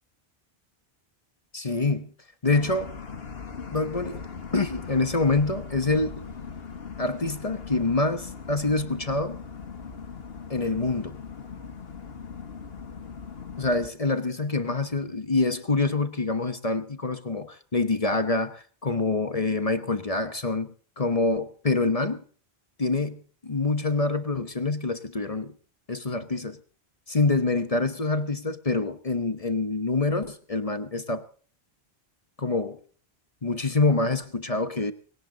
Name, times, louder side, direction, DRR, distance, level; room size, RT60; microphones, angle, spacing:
voice 1, 1.5-2.1 2.4-2.9 3.7-4.3 4.5-6.3 7.0-9.4 10.5-11.2 13.6-22.2 22.8-25.5 25.9-26.6 27.1-31.3 32.4-32.8 33.4-34.9, left 3 dB, 35° left, 1.1 m, -26 dB
sound 1, 2.5-13.9, left 5 dB, 70° left, 1.6 m, -40 dB
20.0 x 17.5 x 3.9 m
omnidirectional pair, 1.1 m